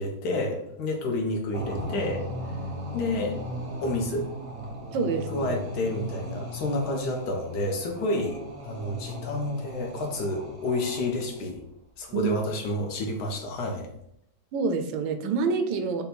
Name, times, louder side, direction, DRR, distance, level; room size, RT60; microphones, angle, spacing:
voice 1, 0.0-2.2 2.9-3.4 3.8-4.3 5.3-11.6 12.0-13.9, left 2 dB, 65° left, 2 dB, 1.2 m, -29 dB
sound 1, 1.5-11.4, equal, 45° right, 0.4 m, -37 dB
voice 2, 4.9-5.5 12.1-12.4 14.5-16.0, right 4 dB, 80° right, 6 dB, 1.3 m, -27 dB
5.3 x 2.2 x 4.3 m, 0.77 s
omnidirectional pair, 2.1 m